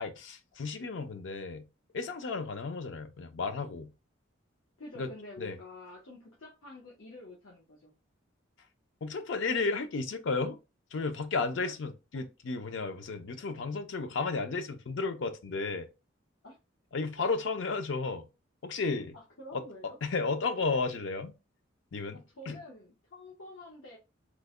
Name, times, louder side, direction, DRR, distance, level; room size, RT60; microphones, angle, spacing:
voice 1, 0.0-1.6 1.9-3.9 5.0-5.1 5.4-5.6 9.0-10.6 10.9-15.9 16.9-18.3 18.6-19.1 19.5-19.6 20.0-21.3 21.9-22.2 22.5-22.6, left 4 dB, 65° left, 0.5 m, -33 dB
voice 2, 4.8-7.9 11.6-11.7 16.4-16.6 19.1-20.0 22.1-24.0, left 2 dB, 90° left, 0.8 m, -48 dB
3.1 x 2.1 x 3.5 m
head